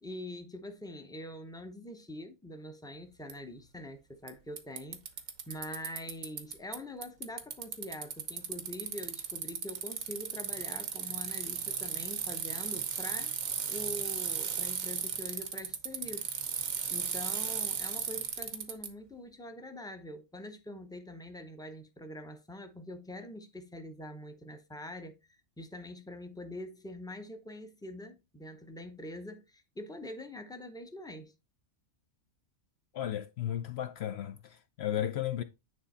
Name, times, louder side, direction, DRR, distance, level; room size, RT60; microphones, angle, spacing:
voice 1, 0.0-5.0 5.5-13.3 13.7-16.3 16.6-25.1 25.6-31.3, left 1 dB, 5° left, 0.6 m, -44 dB
Bicycle, 3.3-3.4 4.3-4.4 4.6-6.8 7.0-18.9, right 7 dB, 85° right, 1.4 m, -35 dB
voice 2, 32.9-35.4, left 11 dB, 65° left, 0.7 m, -34 dB
9.7 x 3.3 x 4.1 m
omnidirectional pair, 1.4 m